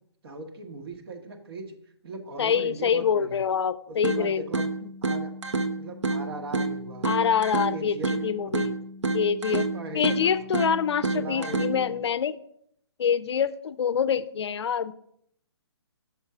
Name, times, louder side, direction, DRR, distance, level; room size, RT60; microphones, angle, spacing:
voice 1, 0.2-1.8 2.0-3.4 3.9-4.7 5.0-5.3 5.7-7.1 7.7-8.7 9.4-10.5 11.1-12.0, right 2 dB, 60° right, 5 dB, 1.2 m, -39 dB
voice 2, 2.4-4.4 7.0-8.0 8.2-8.8 9.1-9.7 9.9-12.4 13.0-14.9, left 7 dB, 70° left, 16 dB, 0.4 m, -25 dB
sound 1, 4.0-12.0, right 3 dB, 85° right, 0.8 m, -30 dB
6.1 x 4.6 x 5.6 m, 0.71 s
hypercardioid pair, 140°, 15 cm